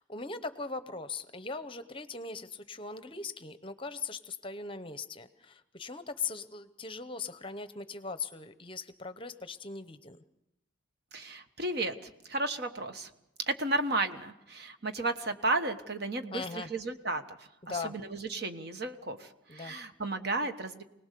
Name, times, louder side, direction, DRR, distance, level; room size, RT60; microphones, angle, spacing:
voice 1, 0.0-10.2 16.3-16.7 17.6-17.9 19.5-19.7, left 4 dB, 25° left, 11 dB, 0.8 m, -40 dB
voice 2, 11.1-12.0 12.3-13.1 13.5-17.4 17.7-20.8, right 2 dB, 50° right, 7 dB, 1.3 m, -33 dB
25.5 x 19.0 x 6.7 m, 0.85 s
head